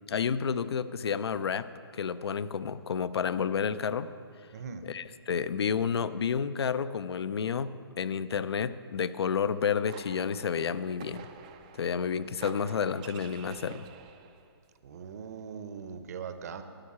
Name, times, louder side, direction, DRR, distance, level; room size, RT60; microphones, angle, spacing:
voice 1, 0.1-1.7 1.9-4.1 4.8-7.7 8.0-11.3 11.8-13.9, left 6 dB, 75° left, 14 dB, 0.5 m, -30 dB
voice 2, 4.5-4.8 14.8-16.6, right 6 dB, 40° right, 9 dB, 0.7 m, -40 dB
sound 1, 9.5-14.5, right 7 dB, 15° right, 0.3 m, -49 dB
11.5 x 6.5 x 8.5 m, 2.3 s
hypercardioid pair, 165°, 13 cm